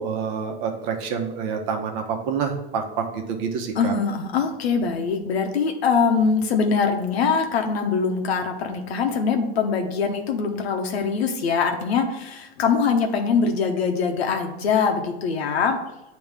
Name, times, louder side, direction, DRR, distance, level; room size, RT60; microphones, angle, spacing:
voice 1, 0.0-4.0, right 6 dB, 50° right, 3 dB, 1.0 m, -27 dB
voice 2, 3.8-15.8, left 5 dB, 90° left, 4 dB, 1.1 m, -23 dB
9.0 x 3.1 x 3.5 m, 0.99 s
supercardioid pair, 135°, 31 cm